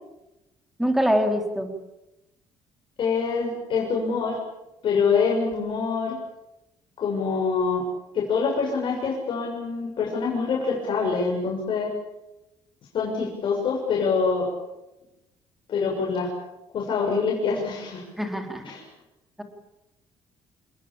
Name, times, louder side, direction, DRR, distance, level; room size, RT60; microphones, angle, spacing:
voice 1, 0.8-1.7 18.2-18.6, equal, ahead, 5 dB, 3.5 m, -23 dB
voice 2, 3.0-4.4 4.8-6.1 7.0-7.8 8.1-11.9 12.9-14.5 15.7-16.3 16.7-18.0 18.6-18.8, left 5 dB, 45° left, -1 dB, 6.6 m, -25 dB
28.0 x 20.5 x 8.7 m, 0.93 s
cardioid pair, 165°, 11 cm